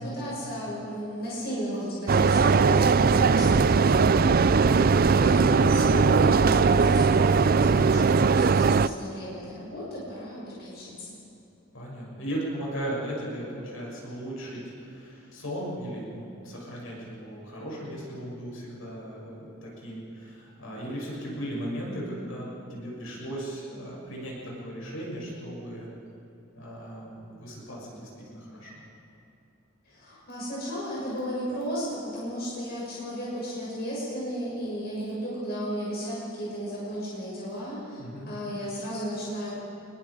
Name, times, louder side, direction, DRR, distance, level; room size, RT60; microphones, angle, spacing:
voice 1, 0.0-4.1 4.5-11.1 29.8-39.5, equal, 50° left, -6 dB, 6.4 m, -34 dB
sound 1, 2.1-8.9, right 5 dB, 45° right, 0.4 m, -20 dB
voice 2, 11.7-25.9 26.5-28.8 38.0-38.3, right 1 dB, 70° left, -4 dB, 7.3 m, -37 dB
28.5 x 21.5 x 5.1 m, 2.9 s
head